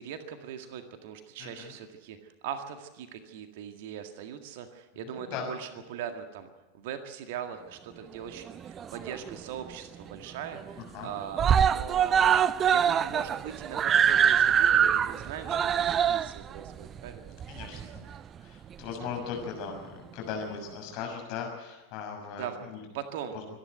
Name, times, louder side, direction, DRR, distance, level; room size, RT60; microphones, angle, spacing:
voice 1, 0.0-6.5 6.7-18.2 22.3-22.6 22.9-23.4, right 8 dB, 50° right, 7 dB, 1.9 m, -41 dB
voice 2, 1.4-1.7 5.1-5.5 10.9-11.1 17.5-18.0 18.4-22.8 23.3-23.4, left 6 dB, 45° left, 2 dB, 6.4 m, -38 dB
Screaming, 8.5-9.4 9.7-9.8 10.1-10.2 10.5-11.0 11.3-18.2 19.0-19.1, right 8 dB, 25° right, 0.6 m, -24 dB
25.0 x 11.0 x 9.2 m, 1.1 s
figure-of-eight pair, 90°, 0 cm